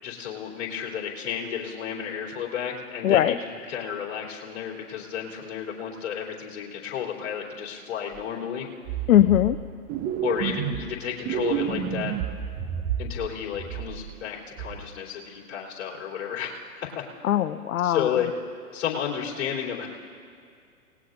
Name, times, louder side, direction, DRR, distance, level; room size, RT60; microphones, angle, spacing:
voice 1, 0.0-3.4 3.7-8.7 10.2-12.1 13.0-17.0 17.8-18.3 18.7-19.9, left 8 dB, 45° left, -4 dB, 3.7 m, -32 dB
voice 2, 3.0-3.3 9.1-9.6 17.2-18.1, left 12 dB, 70° left, 13 dB, 0.6 m, -20 dB
sound 1, 8.1-8.2 8.8-9.6 9.9-10.9 11.2-13.3 13.5-14.2 14.6-14.8, right 9 dB, 20° right, 0.6 m, -30 dB
28.0 x 19.0 x 2.7 m, 2.3 s
hypercardioid pair, 115°, 44 cm